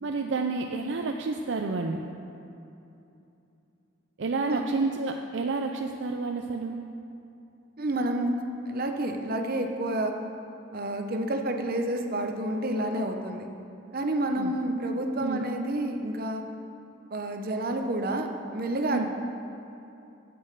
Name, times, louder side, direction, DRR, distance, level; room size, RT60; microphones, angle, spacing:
voice 1, 0.0-2.1 4.2-6.8 14.3-14.5 15.2-15.4 18.9-19.0, right 3 dB, 65° right, 3 dB, 0.5 m, -30 dB
voice 2, 7.8-8.3 8.7-10.1 10.7-13.5 13.9-16.4 17.1-18.3 18.5-19.1, right 1 dB, 50° right, 4 dB, 0.9 m, -29 dB
8.8 x 8.5 x 6.6 m, 2.8 s
head